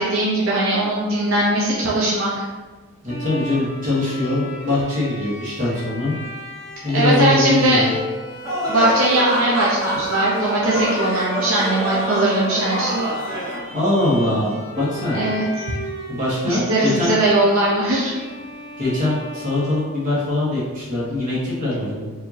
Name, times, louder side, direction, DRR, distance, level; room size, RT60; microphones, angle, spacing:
voice 1, 0.0-2.4 6.9-7.8 8.7-13.0 15.1-15.7 16.5-18.2, right 1 dB, 65° right, -6 dB, 0.7 m, -20 dB
voice 2, 3.0-6.1 6.8-7.9 13.7-15.2 16.1-17.2 18.8-22.1, left 2 dB, 35° right, -8 dB, 1.3 m, -22 dB
Bowed string instrument, 3.1-20.5, equal, 45° left, 0.9 m, -35 dB
sound 1, 8.4-13.6, equal, 15° right, 0.9 m, -26 dB
4.7 x 2.8 x 2.8 m, 1.3 s
head